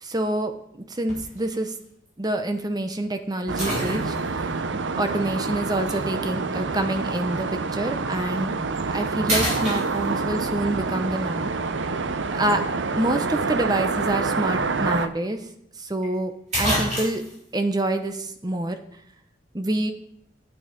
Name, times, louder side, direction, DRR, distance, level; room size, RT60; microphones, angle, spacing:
voice 1, 0.0-1.8 2.2-8.5 8.9-11.5 12.3-12.6 12.9-15.5 15.8-17.2 17.5-18.8 19.5-19.9, right 1 dB, 20° right, 7 dB, 0.8 m, -27 dB
sound 1, 1.1-1.4 2.1-2.2 3.6-4.4 5.9-6.0 8.2-8.3 8.8-9.0 9.3-10.4 14.5-14.6 14.9-15.0 16.0-16.1 16.5-17.4, equal, 40° right, 4.7 m, -27 dB
sound 2, 3.5-15.1, right 4 dB, 80° right, 0.7 m, -27 dB
9.4 x 9.3 x 5.2 m, 0.73 s
head